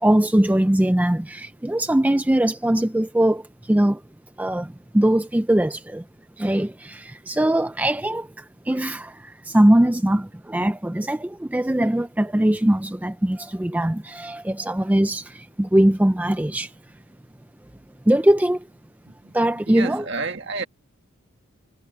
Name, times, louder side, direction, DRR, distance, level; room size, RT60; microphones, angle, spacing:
voice 1, 0.0-3.4 3.7-4.0 4.4-4.7 4.9-6.0 6.4-8.3 8.7-9.1 9.5-16.7 18.1-18.6 19.3-20.1, right 1 dB, 5° right, 0.3 m, -21 dB
voice 2, 19.7-20.6, right 3 dB, 55° right, 1.8 m, -30 dB
head